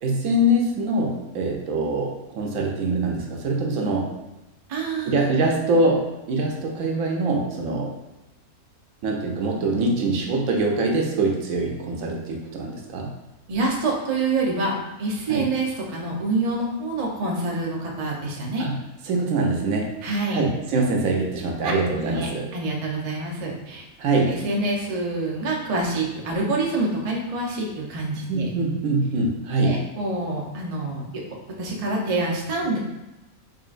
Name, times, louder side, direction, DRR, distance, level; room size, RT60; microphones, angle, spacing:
voice 1, 0.0-4.1 5.1-6.0 6.3-7.9 9.0-13.1 15.3-15.5 18.6-18.8 19.1-19.9 20.3-22.5 24.0-24.4 28.3-29.8, right 2 dB, 70° right, 0 dB, 1.0 m, -23 dB
voice 2, 4.7-5.3 13.5-14.7 15.0-18.7 20.0-20.5 21.6-21.7 22.0-23.8 24.3-28.5 29.6-31.0 31.6-32.8, right 2 dB, 45° right, -2 dB, 0.5 m, -26 dB
3.9 x 3.7 x 2.4 m, 1.0 s
omnidirectional pair, 1.6 m